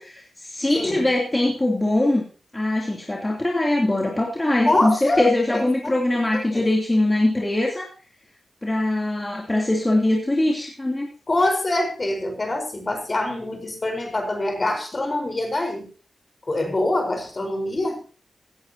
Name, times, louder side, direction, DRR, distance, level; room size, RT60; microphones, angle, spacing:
voice 1, 0.0-2.2 2.5-7.9 8.6-11.1, left 1 dB, 20° left, -2 dB, 3.0 m, -22 dB
voice 2, 0.7-1.1 4.7-6.0 6.3-6.6 11.3-15.9 16.5-18.0, left 2 dB, 40° left, 4 dB, 4.5 m, -24 dB
17.0 x 11.0 x 2.9 m, 0.38 s
cardioid pair, 55°, 0 cm